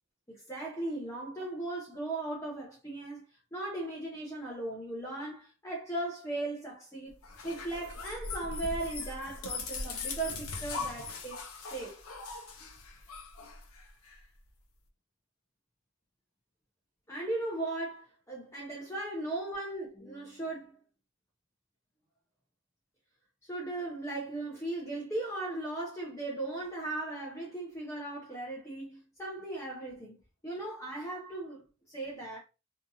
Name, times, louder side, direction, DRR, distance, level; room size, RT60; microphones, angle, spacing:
voice 1, 0.3-3.2 3.5-7.2 7.4-12.0 17.1-20.7 23.4-32.4, right 2 dB, 15° left, 0.5 m, -37 dB
sound 1, 7.2-14.2, left 4 dB, 90° left, 0.7 m, -40 dB
2.7 x 2.4 x 2.6 m
head